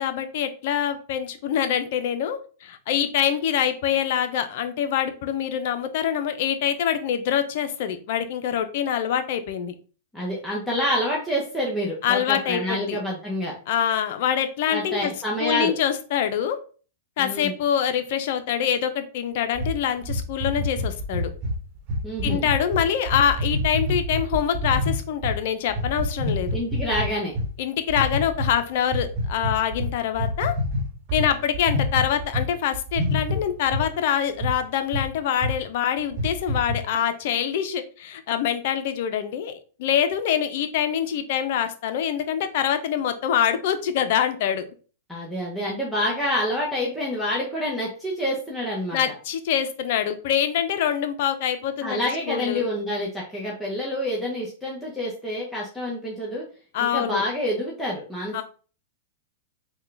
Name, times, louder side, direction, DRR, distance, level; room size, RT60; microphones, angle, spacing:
voice 1, 0.0-9.7 12.0-13.0 13.7-15.1 15.4-16.6 17.2-21.3 22.2-26.5 27.6-30.5 31.1-44.6 48.9-52.7 56.7-57.2 58.3-58.4, left 9 dB, 60° left, 9 dB, 0.5 m, -25 dB
voice 2, 10.1-13.5 14.7-15.7 17.2-17.5 22.0-22.5 26.5-27.3 45.1-49.0 51.8-56.4 56.8-58.4, left 1 dB, ahead, -5 dB, 0.8 m, -27 dB
sound 1, 19.5-25.4 25.7-27.5 27.9-28.5 28.9-32.5 32.7-33.9 34.4-34.5 34.9-35.1 35.4-35.5 36.0-36.8, left 1 dB, 40° right, 1.1 m, -26 dB
3.7 x 2.3 x 3.2 m, 0.39 s
hypercardioid pair, 130°, 0 cm